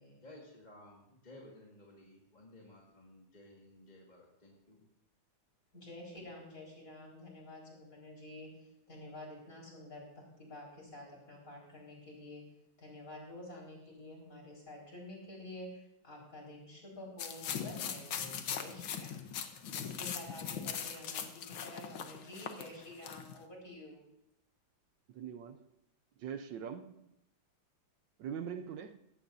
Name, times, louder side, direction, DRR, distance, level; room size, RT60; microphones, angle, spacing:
voice 1, 0.2-4.8, left 1 dB, 20° left, 1.9 m, -56 dB
voice 2, 5.7-12.4 12.8-19.2 19.6-24.1, left 1 dB, 40° left, 5.0 m, -49 dB
sound 1, 17.2-23.4, left 8 dB, 85° left, 1.7 m, -40 dB
voice 3, 25.1-25.7 26.2-27.1 28.2-29.0, right 8 dB, 75° right, 1.2 m, -42 dB
17.5 x 15.5 x 2.7 m
omnidirectional pair, 2.1 m